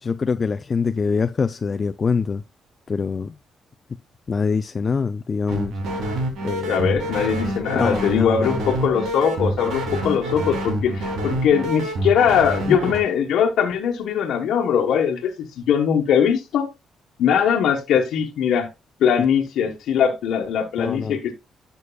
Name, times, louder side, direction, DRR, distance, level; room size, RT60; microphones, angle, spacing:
voice 1, 0.0-2.4 2.9-3.4 4.3-5.7 6.4-7.0 7.7-8.6 12.7-12.9 20.8-21.2, left 5 dB, 35° left, 0.4 m, -24 dB
sound 1, 5.5-13.0, right 1 dB, 80° right, 2.9 m, -26 dB
voice 2, 6.6-16.7 17.2-18.7 19.0-21.3, left 8 dB, 75° left, 1.2 m, -21 dB
11.0 x 6.7 x 2.3 m
cardioid pair, 90°, 0 cm